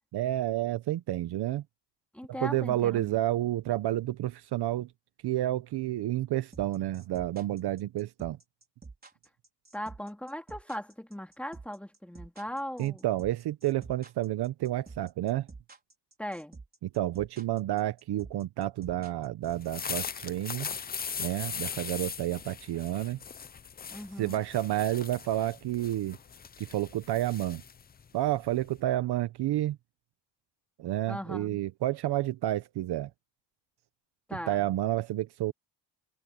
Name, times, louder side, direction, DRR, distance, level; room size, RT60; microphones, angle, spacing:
voice 1, 0.1-1.6 2.3-4.9 5.2-8.4 12.8-15.5 16.9-20.7 21.2-23.2 24.2-26.2 26.6-27.6 28.1-29.8 30.8-33.1 34.5-35.5, right 14 dB, 60° right, 0.9 m, -30 dB
voice 2, 2.1-3.2 9.7-13.1 16.2-16.6 23.9-24.4 31.1-31.6 34.3-34.6, equal, 5° left, 2.6 m, -39 dB
sound 1, 6.5-19.7, right 4 dB, 20° right, 4.5 m, -49 dB
sound 2, 19.5-28.8, left 6 dB, 20° left, 0.5 m, -40 dB
cardioid pair, 145°, 45 cm